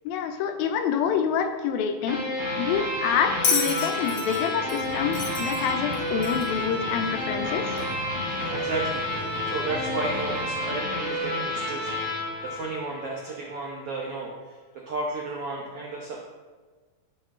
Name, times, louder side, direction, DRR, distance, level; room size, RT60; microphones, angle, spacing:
voice 1, 0.1-2.3 2.6-7.7, left 7 dB, 85° left, 7 dB, 2.5 m, -27 dB
sound 1, 2.1-13.3, left 1 dB, 15° right, 2.3 m, -30 dB
Bell, 3.4-6.6 7.8-7.9, left 5 dB, 60° left, 1.5 m, -30 dB
sound 2, 4.7-10.6, equal, 45° left, 3.1 m, -40 dB
voice 2, 8.5-11.9 12.4-14.5 14.9-16.2, right 3 dB, 80° right, -2 dB, 1.3 m, -33 dB
11.5 x 6.2 x 3.7 m, 1.4 s
omnidirectional pair, 4.1 m